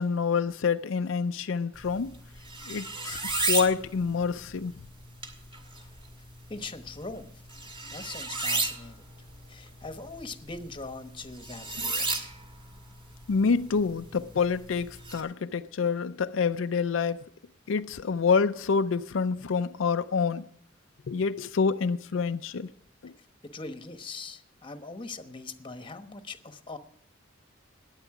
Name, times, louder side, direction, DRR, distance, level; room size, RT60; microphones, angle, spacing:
voice 1, 0.0-2.1 2.7-3.2 3.5-4.7 13.3-17.2 17.7-20.5 21.1-22.7 23.0-23.1, left 5 dB, 80° left, 0.5 m, -27 dB
sound 1, 1.7-15.2, right 3 dB, 25° right, 2.1 m, -35 dB
voice 2, 6.5-7.3 7.9-9.1 9.5-12.2 23.5-26.8, left 3 dB, 25° left, 1.1 m, -41 dB
20.0 x 8.2 x 4.9 m
head